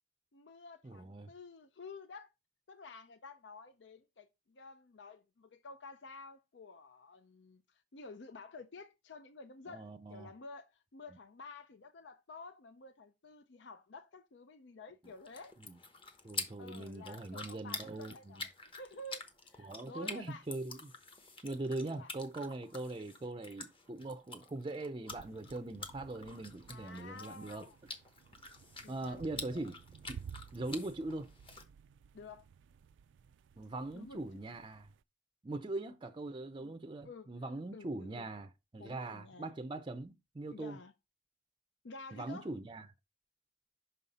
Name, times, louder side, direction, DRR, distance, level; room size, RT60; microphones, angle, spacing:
voice 1, 0.3-2.3 2.7-15.5 16.6-19.2 19.5-20.4 21.6-22.1 26.7-27.8 28.8-29.7 32.1-32.5 33.9-34.2 36.6-36.8 37.0-37.3 37.7-38.3 38.8-39.5 40.5-40.9 41.8-42.5, left 3 dB, 75° left, 0.6 m, -51 dB
voice 2, 0.8-1.3 9.7-10.3 15.6-15.7 16.2-18.4 19.6-20.9 21.4-27.6 28.9-29.8 30.0-30.2 30.5-31.3 33.6-34.9 35.4-40.8 42.1-42.9, right 2 dB, 25° right, 0.5 m, -41 dB
sound 1, 15.0-31.6, left 3 dB, 30° left, 1.0 m, -48 dB
sound 2, 25.1-35.0, right 7 dB, 85° right, 0.3 m, -55 dB
5.6 x 5.5 x 4.1 m
head